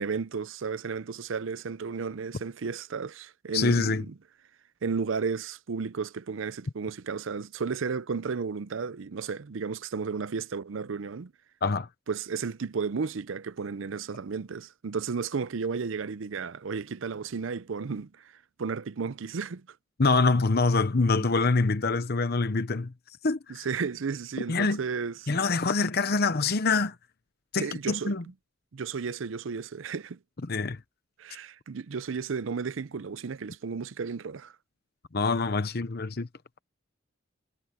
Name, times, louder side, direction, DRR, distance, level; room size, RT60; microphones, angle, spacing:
voice 1, 0.0-4.1 4.8-11.3 12.1-18.3 18.6-19.7 21.1-21.3 23.5-25.3 27.6-28.1 28.7-30.2 31.2-34.5, right 5 dB, 70° right, 0.5 m, -33 dB
voice 2, 3.5-4.0 11.6-11.9 20.0-22.9 23.2-23.7 24.5-24.8 25.3-26.9 27.5-28.2 30.4-30.8 35.1-36.3, left 3 dB, 50° left, 0.8 m, -25 dB
head